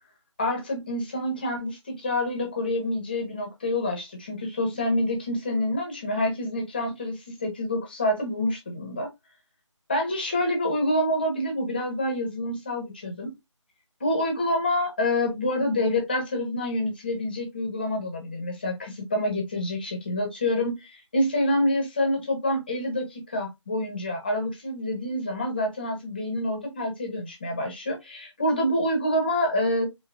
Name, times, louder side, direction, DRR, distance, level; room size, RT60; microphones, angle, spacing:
voice 1, 0.4-9.1 9.9-13.3 14.0-29.9, left 1 dB, 20° left, 0.9 m, -27 dB
3.9 x 3.7 x 2.3 m
figure-of-eight pair, 170°, 16 cm